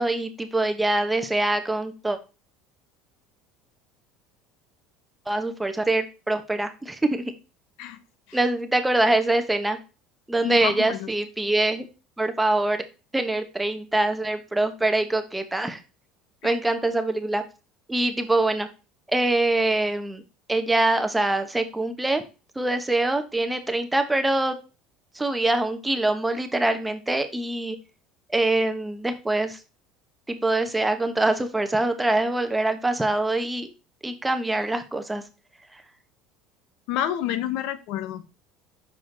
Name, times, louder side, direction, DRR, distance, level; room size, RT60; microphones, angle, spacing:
voice 1, 0.0-2.2 5.3-7.3 8.3-9.8 10.3-11.9 12.2-12.8 13.1-15.8 16.4-17.4 17.9-18.7 19.1-20.2 20.5-22.2 22.5-24.6 25.1-27.8 28.3-29.6 30.3-33.7 34.0-35.2, right 2 dB, 10° right, 8 dB, 1.1 m, -24 dB
voice 2, 10.4-11.1 16.4-16.5 36.9-38.2, left 11 dB, 70° left, 11 dB, 0.7 m, -29 dB
6.2 x 4.9 x 3.9 m, 0.31 s
supercardioid pair, 90°, 0 cm